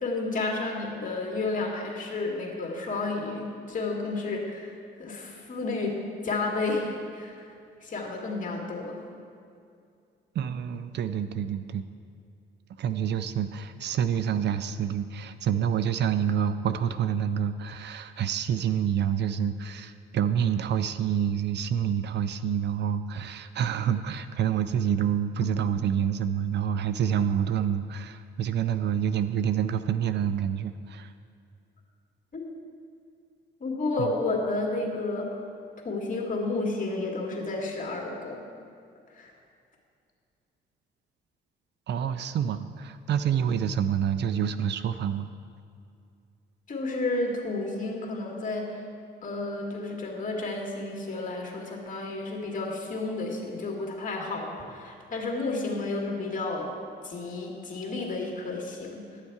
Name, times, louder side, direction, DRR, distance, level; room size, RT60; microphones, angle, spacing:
voice 1, 0.0-4.7 5.0-7.5 7.8-9.0 32.3-32.5 33.6-35.4 35.8-38.4 39.1-39.3 46.7-48.8 49.2-56.7 57.0-59.0, left 3 dB, 40° left, -1 dB, 2.0 m, -31 dB
voice 2, 10.4-11.8 12.8-31.1 34.0-34.1 41.9-45.3, right 8 dB, 60° right, 11 dB, 0.4 m, -27 dB
11.5 x 7.2 x 4.7 m, 2.4 s
cardioid pair, 90°, 20 cm